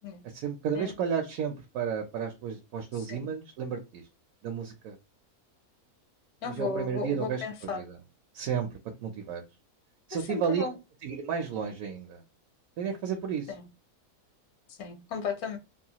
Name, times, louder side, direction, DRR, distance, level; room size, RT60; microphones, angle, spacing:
voice 1, 0.3-4.0 4.4-5.0 6.4-8.0 8.3-9.4 10.1-10.7 11.0-12.2 12.8-13.5, right 7 dB, 75° right, 1.0 m, -32 dB
voice 2, 2.9-3.3 6.4-7.8 10.3-10.7 13.5-13.7 14.7-15.6, left 4 dB, 80° left, 1.2 m, -35 dB
2.9 x 2.3 x 2.8 m
omnidirectional pair, 1.6 m